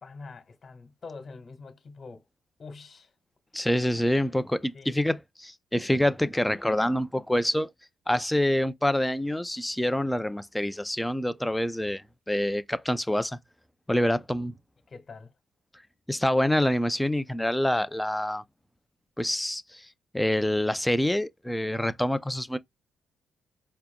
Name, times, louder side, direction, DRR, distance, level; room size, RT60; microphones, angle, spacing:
voice 1, 0.0-2.2 2.6-3.1 4.6-5.0 14.9-15.3, left 4 dB, 40° left, 1.5 m, -45 dB
voice 2, 3.5-7.7 8.1-13.4 13.9-14.5 16.1-18.4 19.2-19.9 20.1-22.6, left 1 dB, 5° left, 0.5 m, -26 dB
4.6 x 2.8 x 2.3 m
cardioid pair, 90°, 0 cm